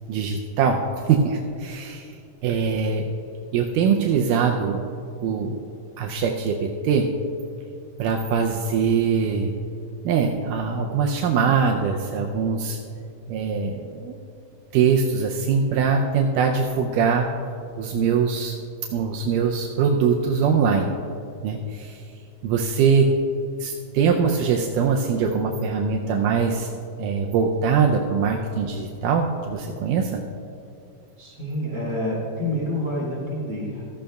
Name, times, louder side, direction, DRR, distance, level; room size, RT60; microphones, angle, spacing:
voice 1, 0.1-0.8 1.1-2.1 2.4-3.1 3.5-4.8 5.2-5.6 6.0-7.1 8.0-9.5 10.1-12.8 13.3-14.3 14.7-17.3 17.8-18.5 18.9-21.0 21.4-22.0 22.4-23.1 23.6-26.7 27.0-30.2, right 6 dB, 80° right, 1 dB, 2.1 m, -22 dB
voice 2, 31.2-33.8, left 1 dB, 35° right, -6 dB, 2.0 m, -28 dB
15.5 x 14.0 x 2.3 m, 2.6 s
omnidirectional pair, 3.8 m